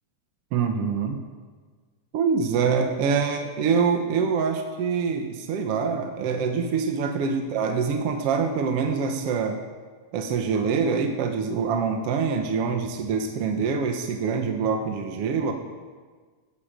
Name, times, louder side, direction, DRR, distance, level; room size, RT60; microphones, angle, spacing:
voice 1, 0.5-1.2 2.1-9.6 10.1-15.5, right 5 dB, 65° right, 4 dB, 1.7 m, -25 dB
16.5 x 14.5 x 5.1 m, 1.5 s
omnidirectional pair, 3.6 m